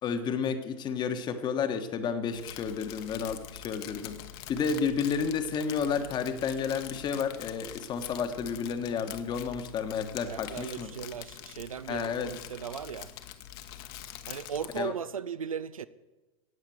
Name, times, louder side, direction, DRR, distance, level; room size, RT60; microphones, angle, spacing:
voice 1, 0.0-4.2 4.5-10.9 11.9-12.3 14.8-14.9, left 6 dB, 25° left, 1.3 m, -31 dB
Crumpling crinkling, 2.3-14.9, left 11 dB, 40° left, 1.2 m, -45 dB
voice 2, 10.3-13.1 14.2-15.9, right 7 dB, 70° right, 0.7 m, -37 dB
17.0 x 7.2 x 7.8 m
figure-of-eight pair, 100°, 18 cm